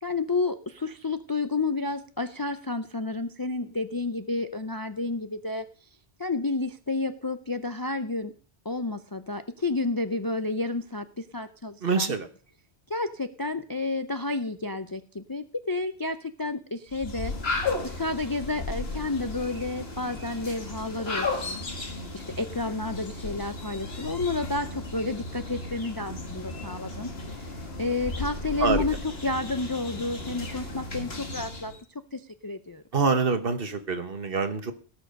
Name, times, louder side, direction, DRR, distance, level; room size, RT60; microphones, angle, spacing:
voice 1, 0.0-5.6 6.2-8.3 8.6-12.1 12.9-17.3 17.8-27.1 27.4-27.5 27.8-31.7 32.1-32.8, left 3 dB, 30° left, 10 dB, 0.4 m, -31 dB
voice 2, 11.8-12.3 28.6-28.8 32.9-34.7, right 4 dB, 60° right, 9 dB, 1.4 m, -25 dB
sound 1, 16.9-31.8, left 3 dB, 65° left, 2.1 m, -35 dB
17.5 x 6.4 x 5.2 m, 0.42 s
omnidirectional pair, 1.1 m